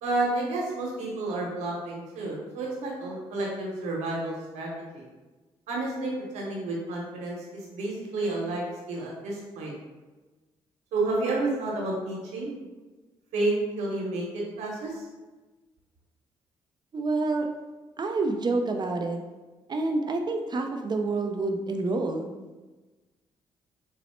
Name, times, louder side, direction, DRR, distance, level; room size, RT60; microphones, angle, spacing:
voice 1, 0.0-5.0 5.7-9.7 10.9-12.5 13.3-14.9, right 2 dB, 90° right, -3 dB, 1.0 m, -30 dB
voice 2, 16.9-17.5 18.0-19.2 19.7-22.3, right 3 dB, 40° right, 4 dB, 0.5 m, -28 dB
4.0 x 2.0 x 4.3 m, 1.2 s
supercardioid pair, 65°, 11 cm